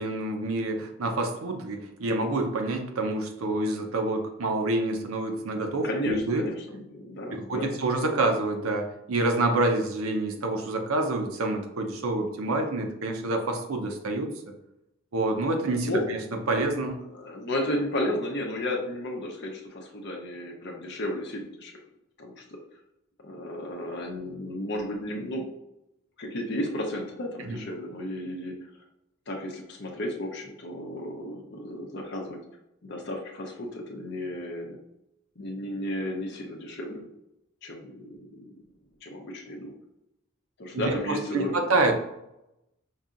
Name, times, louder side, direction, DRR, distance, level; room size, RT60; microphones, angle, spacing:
voice 1, 0.0-6.4 7.5-14.3 15.1-16.2 16.5-17.0 27.5-27.6 40.7-41.9, right 2 dB, 85° right, 4 dB, 0.6 m, -27 dB
voice 2, 5.8-7.7 15.8-16.0 17.1-21.8 22.2-22.6 23.2-25.4 26.2-28.6 29.3-32.4 32.8-34.8 35.4-37.0 37.6-38.6 39.0-39.7 40.6-41.7, left 1 dB, 55° left, 1 dB, 0.7 m, -33 dB
5.5 x 2.7 x 2.4 m, 0.86 s
head